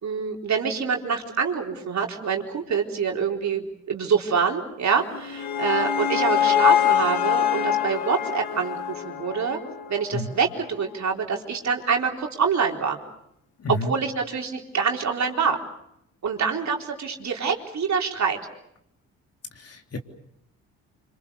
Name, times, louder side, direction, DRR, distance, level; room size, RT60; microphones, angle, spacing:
voice 1, 0.0-9.6 9.9-13.0 13.7-15.6 16.2-18.4, right 6 dB, 50° right, 1 dB, 4.1 m, -26 dB
sound 1, 5.0-10.2, left 10 dB, 80° left, 2.1 m, -24 dB
voice 2, 13.6-13.9 19.5-20.0, left 2 dB, 40° left, 4 dB, 3.5 m, -30 dB
26.5 x 26.0 x 6.9 m, 0.77 s
supercardioid pair, 60°, 36 cm